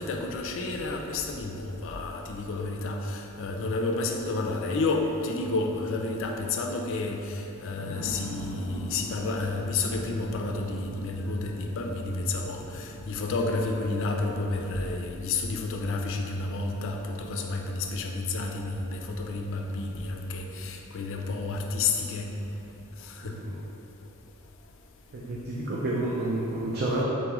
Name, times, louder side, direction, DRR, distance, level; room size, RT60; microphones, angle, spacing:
voice 1, 0.0-22.3 23.0-23.4, left 3 dB, 60° left, 2 dB, 0.4 m, -30 dB
sound 1, 7.7-23.3, equal, 5° left, 1.3 m, -44 dB
voice 2, 23.2-23.5 25.1-27.0, right 2 dB, 45° right, -5 dB, 0.4 m, -30 dB
4.0 x 3.0 x 3.5 m, 3.0 s
head